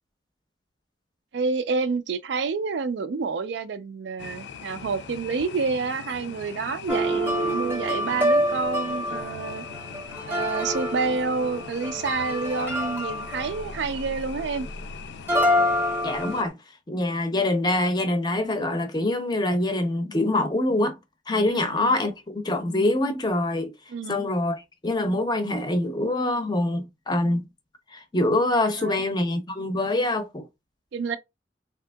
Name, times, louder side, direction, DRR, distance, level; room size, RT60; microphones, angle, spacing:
voice 1, 1.3-9.6 10.3-14.7 21.5-21.9 23.9-24.2 28.8-29.0 30.9-31.2, right 4 dB, 85° right, 0.4 m, -28 dB
sound 1, 4.2-16.4, left 6 dB, 75° left, 0.4 m, -41 dB
sound 2, 6.9-14.7 15.3-16.5, equal, 10° right, 0.7 m, -26 dB
voice 2, 16.0-16.5 16.9-21.0 21.3-23.7 24.1-27.4 27.9-30.4, left 1 dB, 25° left, 0.5 m, -25 dB
3.4 x 2.7 x 2.2 m
head